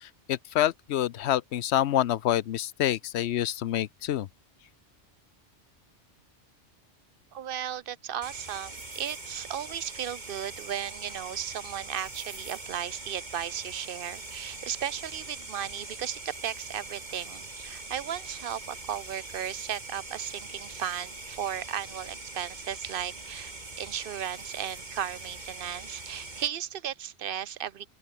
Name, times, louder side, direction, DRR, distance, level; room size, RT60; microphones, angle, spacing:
voice 1, 0.0-4.3, left 12 dB, 70° left, 0.9 m, -27 dB
voice 2, 7.3-27.9, right 9 dB, 55° right, 0.7 m, -35 dB
sound 1, 8.2-26.5, right 2 dB, 40° right, 2.6 m, -42 dB
open air
omnidirectional pair, 1.2 m